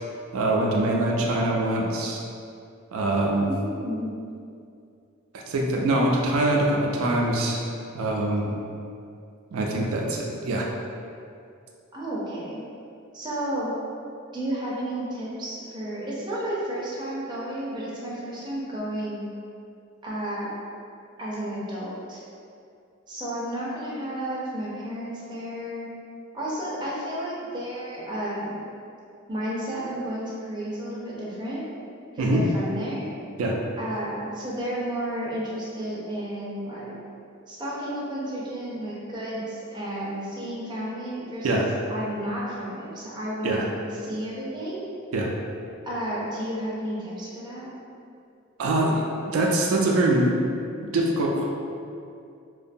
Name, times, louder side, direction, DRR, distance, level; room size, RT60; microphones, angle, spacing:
voice 1, 0.3-2.2 2.9-3.5 5.3-7.6 7.9-8.5 9.5-10.7 32.2-32.4 33.4-33.6 41.4-41.7 43.4-43.7 45.1-45.3 48.6-50.3 50.9-51.4, right 1 dB, 80° right, -1 dB, 0.3 m, -23 dB
voice 2, 3.4-4.1 11.9-12.6 13.1-13.7 14.3-19.2 20.0-20.5 21.2-22.2 23.1-26.0 26.3-28.7 29.3-31.7 32.1-33.1 33.8-36.9 37.5-44.8 45.8-47.7, right 1 dB, 20° right, -6 dB, 0.5 m, -32 dB
2.6 x 2.2 x 2.6 m, 2.5 s
head